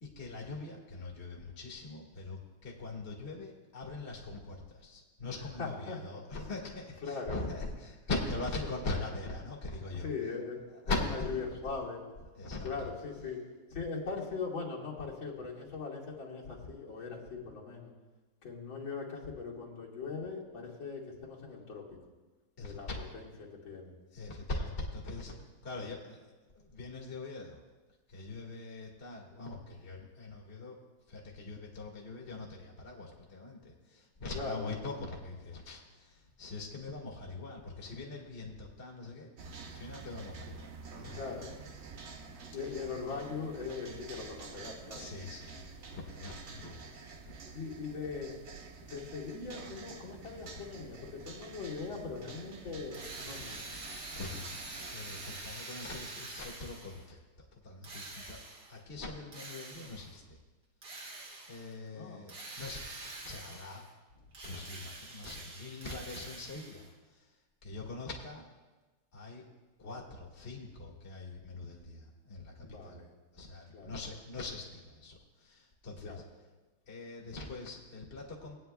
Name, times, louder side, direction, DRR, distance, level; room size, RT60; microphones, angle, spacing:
voice 1, 0.0-10.1 10.7-11.3 12.4-12.9 22.6-23.1 24.1-27.6 28.1-30.8 31.1-39.3 39.7-41.5 44.9-46.8 47.2-47.5 54.2-54.6 54.9-57.2 57.5-58.4 58.7-60.4 61.5-63.0 63.2-63.8 64.4-67.4 67.6-68.5 69.1-69.5 69.8-73.0 73.3-76.2 76.9-78.6, left 3 dB, 30° left, -2 dB, 1.9 m, -42 dB
voice 2, 5.6-6.0 7.0-7.4 10.0-10.6 11.1-12.0 12.6-13.4 13.7-17.9 18.4-21.9 22.6-22.9 23.1-23.9 34.3-34.7 41.0-41.5 42.4-45.1 47.5-48.3 48.7-53.6 61.9-62.2 72.6-73.1 73.7-73.9 76.0-76.2, left 4 dB, 65° left, -5 dB, 2.7 m, -40 dB
sound 1, 39.4-55.4, right 4 dB, 85° right, 0.5 m, -48 dB
Drill, 52.9-57.1 57.8-58.8 59.3-60.2 60.8-61.7 62.3-63.9 64.3-66.9, right 2 dB, 55° right, 2.3 m, -46 dB
20.0 x 9.3 x 2.3 m, 1.2 s
omnidirectional pair, 2.3 m